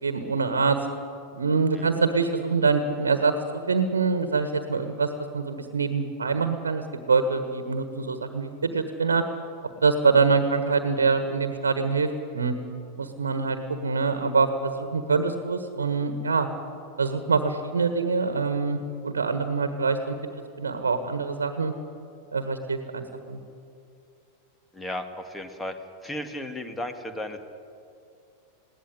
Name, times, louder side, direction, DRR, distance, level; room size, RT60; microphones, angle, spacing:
voice 1, 0.0-0.8 1.3-9.2 9.8-12.5 13.0-16.5 17.0-20.1 20.6-21.7 22.3-23.4, right 4 dB, 70° right, 9 dB, 1.5 m, -25 dB
voice 2, 24.7-25.7 26.0-27.4, left 1 dB, 10° left, 7 dB, 2.0 m, -34 dB
20.5 x 17.0 x 10.0 m, 2.5 s
figure-of-eight pair, 90°, 0 cm